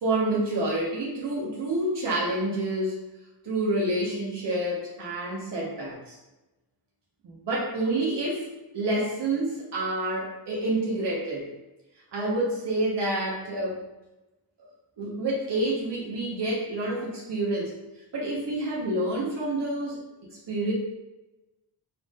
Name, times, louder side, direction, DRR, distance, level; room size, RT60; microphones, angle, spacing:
voice 1, 0.0-3.0 3.4-6.2 7.2-8.5 8.7-11.5 12.1-13.8 14.6-14.7 15.0-17.7 18.1-20.0 20.5-20.7, right 1 dB, 75° right, -5 dB, 1.3 m, -28 dB
4.7 x 3.7 x 2.5 m, 1.0 s
wide cardioid pair, 95°, 42 cm